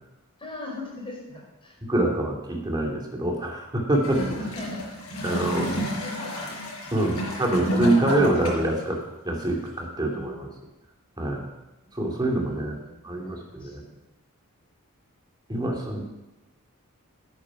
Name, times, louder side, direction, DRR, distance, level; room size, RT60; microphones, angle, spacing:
voice 1, 0.4-1.8 4.4-7.3 10.0-10.5 12.2-14.0 15.5-15.8, left 2 dB, 25° left, -2 dB, 4.8 m, -41 dB
voice 2, 1.9-4.3 5.2-5.7 6.9-10.5 11.2-11.5 11.9-12.8 13.0-13.8 15.5-16.0, right 1 dB, 20° right, -1 dB, 2.4 m, -25 dB
Gurgling / Toilet flush, 3.9-8.8 9.7-9.8, equal, 90° left, 5.1 m, -31 dB
11.0 x 9.7 x 5.9 m, 0.98 s
head